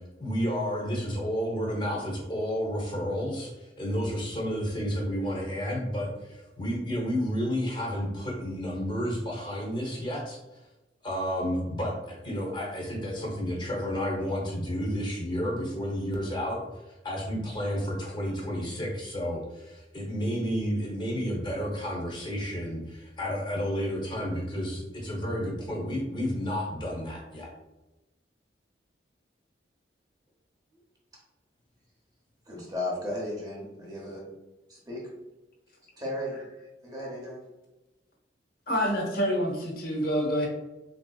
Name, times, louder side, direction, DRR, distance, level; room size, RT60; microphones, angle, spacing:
voice 1, 0.2-10.4 11.0-16.6 17.0-27.5, equal, 25° left, -2 dB, 0.8 m, -31 dB
voice 2, 32.5-34.3 34.7-35.1 36.0-37.4, left 1 dB, 20° right, -3 dB, 0.7 m, -35 dB
voice 3, 38.7-40.5, equal, 55° left, -2 dB, 0.8 m, -27 dB
3.5 x 2.6 x 2.3 m, 1.0 s
head